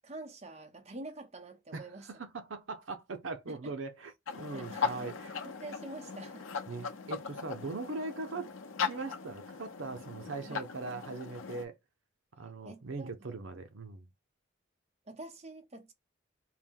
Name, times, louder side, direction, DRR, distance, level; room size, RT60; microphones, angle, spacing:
voice 1, 0.0-2.1 3.5-3.7 4.5-4.9 5.4-6.5 10.5-10.6 12.6-13.4 15.1-15.9, right 2 dB, 30° right, 0.8 m, -46 dB
voice 2, 1.7-5.4 6.7-8.5 8.9-11.8 12.4-14.1, right 3 dB, 70° right, 0.6 m, -40 dB
sound 1, 4.3-11.6, left 6 dB, 80° left, 0.7 m, -39 dB
4.5 x 2.1 x 3.6 m
head